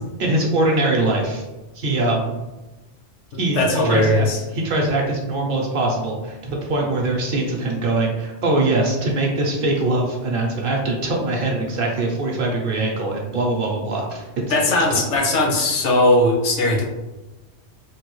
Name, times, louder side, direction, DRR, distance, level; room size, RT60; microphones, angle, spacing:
voice 1, 0.2-1.4 1.8-2.3 3.4-4.3 4.5-14.7, right 2 dB, 60° right, 0 dB, 0.7 m, -22 dB
voice 2, 3.5-4.4 14.5-16.8, left 1 dB, 80° left, 2 dB, 1.0 m, -18 dB
3.2 x 2.2 x 3.0 m, 1.1 s
omnidirectional pair, 1.2 m